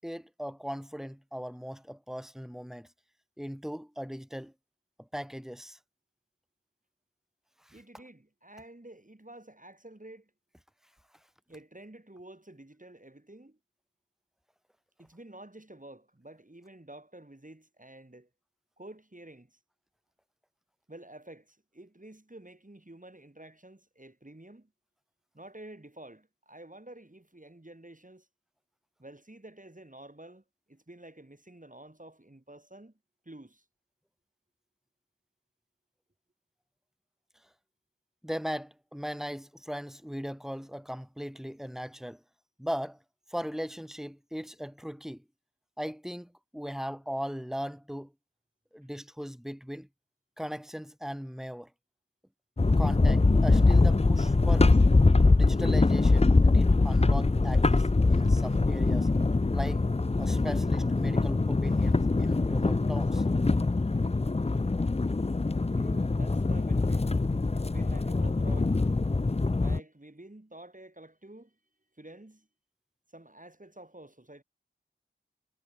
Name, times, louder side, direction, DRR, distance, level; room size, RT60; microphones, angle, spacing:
voice 1, 0.0-2.9 3.4-4.5 5.0-5.8 7.6-7.7 38.2-42.2 42.6-43.0 43.3-45.2 45.8-48.1 48.7-49.9 50.4-51.7 52.8-54.7 55.3-59.1 59.5-59.9 60.2-63.2, equal, ahead, 6.9 m, -38 dB
voice 2, 7.7-10.3 11.5-13.6 15.0-18.3 18.8-19.6 20.9-24.7 25.3-28.3 29.0-33.0 33.2-33.6 65.8-67.3 67.5-68.8 69.6-71.6 72.0-72.5 73.1-74.4, right 1 dB, 40° right, 7.4 m, -50 dB
sound 1, 52.6-69.8, left 3 dB, 30° left, 0.6 m, -23 dB
wide cardioid pair, 40°, 21 cm